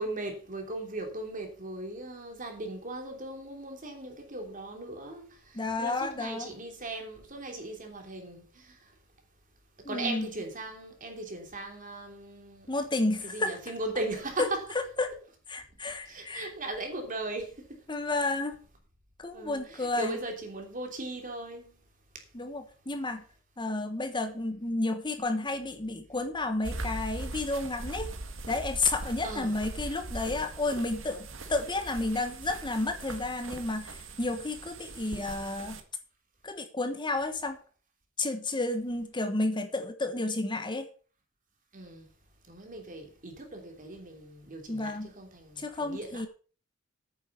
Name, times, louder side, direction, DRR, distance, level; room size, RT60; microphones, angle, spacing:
voice 1, 0.0-8.9 9.9-12.7 13.2-14.6 16.1-17.8 19.3-21.7 29.2-29.7 30.3-30.4 41.7-42.1 42.5-46.2, right 2 dB, 45° right, 3.2 m, -38 dB
voice 2, 5.5-6.5 9.8-10.3 12.7-13.6 14.4-14.5 15.0-15.1 15.5-16.5 17.9-18.6 19.2-20.2 22.3-23.2 23.6-28.1 28.5-35.8 36.4-37.6 38.2-40.9 44.7-45.1 45.6-46.3, left 2 dB, 25° left, 1.2 m, -31 dB
sound 1, 26.6-35.8, right 2 dB, 75° right, 1.8 m, -40 dB
9.4 x 7.3 x 6.7 m
head